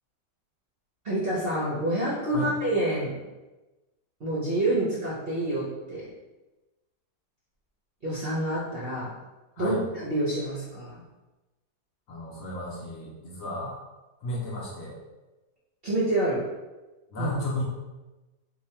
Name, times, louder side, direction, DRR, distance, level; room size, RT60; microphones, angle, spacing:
voice 1, 1.0-3.1 4.2-6.0 8.0-9.1 9.6-11.0 15.8-16.4 17.2-17.3, right 1 dB, 55° right, -8 dB, 0.6 m, -27 dB
voice 2, 12.1-13.7 14.2-14.9 17.1-17.6, left 1 dB, 60° left, -4 dB, 1.1 m, -33 dB
3.1 x 2.3 x 4.2 m, 1.1 s
omnidirectional pair, 1.9 m